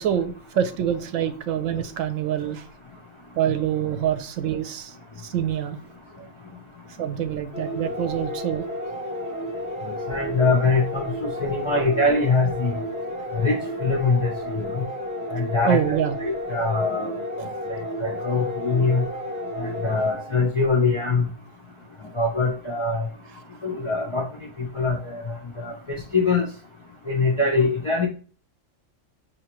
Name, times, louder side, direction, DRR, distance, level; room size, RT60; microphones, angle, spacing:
voice 1, 0.0-2.7 3.4-5.8 7.0-8.7 13.1-13.3 15.6-16.1, right 9 dB, 75° right, 10 dB, 1.0 m, -26 dB
sound 1, 7.5-20.5, equal, 5° right, 0.6 m, -32 dB
voice 2, 10.1-11.1 11.4-12.7 13.3-14.3 14.6-14.7 15.3-17.1 18.0-19.0 19.6-21.3 22.2-23.1 23.6-24.2 24.8-25.2 25.6-26.5 27.1-28.1, left 3 dB, 50° left, 0 dB, 0.3 m, -23 dB
4.9 x 2.8 x 3.0 m, 0.38 s
omnidirectional pair, 1.4 m